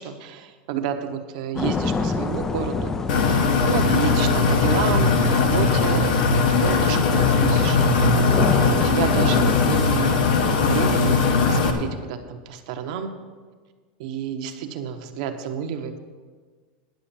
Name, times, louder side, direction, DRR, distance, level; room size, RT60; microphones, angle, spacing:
voice 1, 0.0-2.9 3.7-7.8 8.5-13.1 14.0-16.0, right 7 dB, 50° right, 6 dB, 0.9 m, -30 dB
sound 1, 1.6-9.8, left 4 dB, 10° left, 0.3 m, -29 dB
sound 2, 3.1-11.7, left 4 dB, 65° left, 1.2 m, -19 dB
10.5 x 6.3 x 7.1 m, 1.5 s
supercardioid pair, 180°, 5 cm